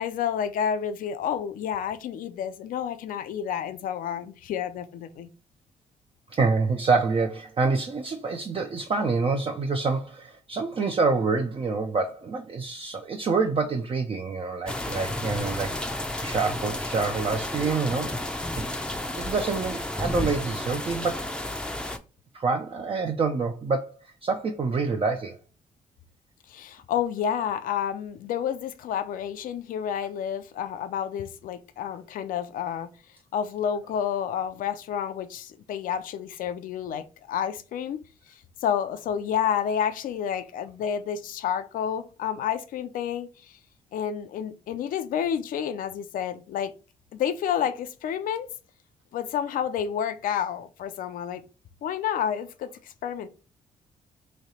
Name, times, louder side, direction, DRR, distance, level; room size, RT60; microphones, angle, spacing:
voice 1, 0.0-5.3 26.5-32.9 33.3-43.6 43.9-46.7 47.1-48.5 49.1-51.4 51.8-53.3, left 8 dB, 80° left, 0.5 m, -30 dB
voice 2, 6.3-15.7 16.2-18.2 18.6-18.7 19.1-21.2 21.9-22.0 22.3-25.4, right 4 dB, 40° right, 0.5 m, -27 dB
sound 1, 14.7-22.0, left 1 dB, 5° left, 0.5 m, -32 dB
3.2 x 2.8 x 4.1 m
cardioid pair, 85°, 14 cm